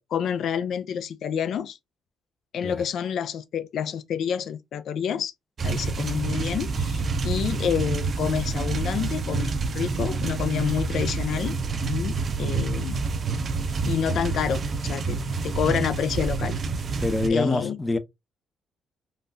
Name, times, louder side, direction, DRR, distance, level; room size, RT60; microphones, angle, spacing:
voice 1, 0.0-1.8 2.5-5.3 5.6-13.0 13.8-15.2 15.4-16.5 17.3-17.8, left 8 dB, 70° left, 0.3 m, -28 dB
sound 1, 5.6-17.3, right 4 dB, 45° right, 0.5 m, -28 dB
voice 2, 17.0-18.0, left 2 dB, 20° left, 0.5 m, -25 dB
3.7 x 2.3 x 2.5 m
cardioid pair, 90°, 0 cm